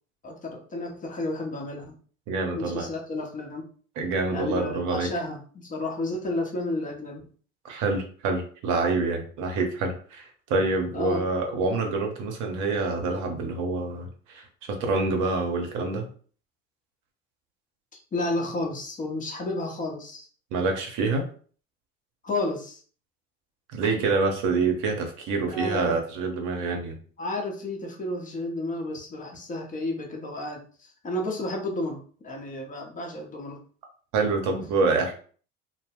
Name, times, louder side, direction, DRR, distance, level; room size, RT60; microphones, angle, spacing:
voice 1, 0.2-2.0 2.5-3.7 4.3-7.2 10.9-11.2 18.1-20.3 22.2-22.8 25.5-26.0 27.2-30.6 31.0-33.6, left 2 dB, 20° left, 1 dB, 0.8 m, -31 dB
voice 2, 2.3-2.9 4.0-5.1 7.6-16.0 20.5-21.2 23.7-27.0 34.1-35.1, right 3 dB, 50° right, 3 dB, 0.8 m, -26 dB
2.2 x 2.1 x 3.3 m, 0.44 s
hypercardioid pair, 70°, 38 cm